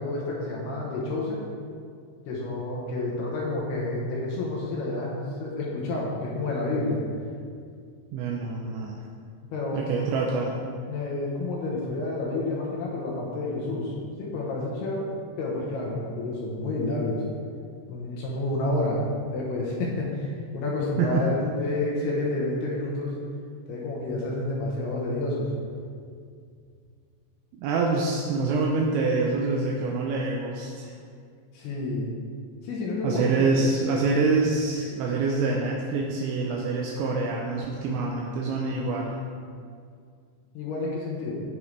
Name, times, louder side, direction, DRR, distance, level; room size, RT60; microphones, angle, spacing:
voice 1, 0.0-1.4 2.3-7.0 9.5-10.1 10.9-13.9 14.2-15.1 15.4-17.2 17.9-19.0 19.3-23.1 23.7-25.5 31.5-32.1 32.6-33.7 40.5-41.4, left 2 dB, 70° left, -3 dB, 2.8 m, -29 dB
voice 2, 8.1-9.0 9.7-10.5 21.0-21.2 27.6-30.9 33.0-39.2, right 3 dB, 80° right, -2 dB, 3.0 m, -26 dB
16.5 x 5.5 x 3.3 m, 2.2 s
omnidirectional pair, 5.3 m